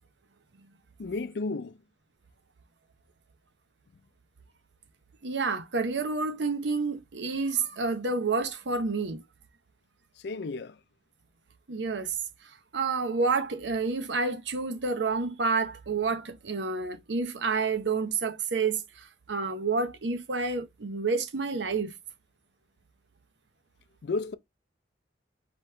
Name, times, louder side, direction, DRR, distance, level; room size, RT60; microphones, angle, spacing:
voice 1, 1.0-1.8 10.2-10.8 24.0-24.3, left 3 dB, 70° left, 0.5 m, -32 dB
voice 2, 5.2-9.2 11.7-12.2 12.7-21.9, right 4 dB, 90° right, 0.8 m, -29 dB
5.2 x 3.1 x 3.2 m
head